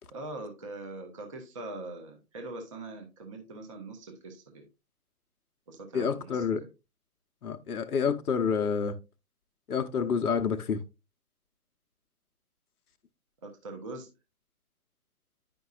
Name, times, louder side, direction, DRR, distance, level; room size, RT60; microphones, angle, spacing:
voice 1, 0.1-4.7 5.7-6.4 13.4-14.1, right 2 dB, 20° right, 0.6 m, -42 dB
voice 2, 5.9-6.6 7.4-9.0 9.7-10.8, left 6 dB, 80° left, 0.8 m, -28 dB
9.4 x 5.3 x 2.3 m
figure-of-eight pair, 145°, 44 cm